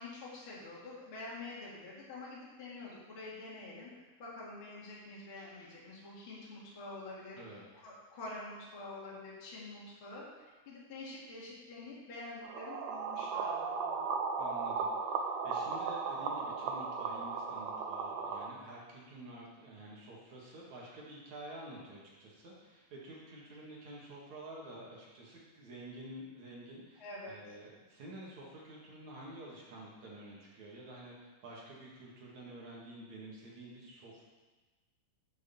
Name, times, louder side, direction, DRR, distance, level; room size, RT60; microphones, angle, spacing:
voice 1, 0.0-14.1 27.0-27.6, left 2 dB, 40° left, -6 dB, 2.3 m, -47 dB
sound 1, 12.4-18.5, right 5 dB, 85° right, 1.5 m, -36 dB
voice 2, 14.4-34.2, right 1 dB, 55° right, -4 dB, 3.0 m, -49 dB
8.0 x 6.3 x 7.0 m, 1.2 s
omnidirectional pair, 4.3 m